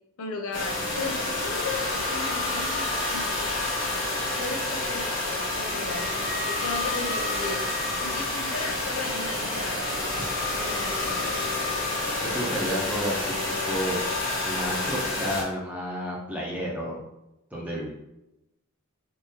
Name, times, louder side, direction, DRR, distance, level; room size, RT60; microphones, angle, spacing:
voice 1, 0.2-3.7 4.4-7.7 8.0-9.9 10.5-11.4, left 3 dB, 75° left, 3 dB, 0.5 m, -36 dB
sound 1, 0.5-15.4, left 2 dB, 55° left, 1.2 m, -29 dB
voice 2, 12.2-13.3 13.7-14.0 14.4-17.0 17.5-17.9, equal, 5° right, -4 dB, 0.7 m, -31 dB
3.6 x 2.6 x 2.8 m, 0.91 s
head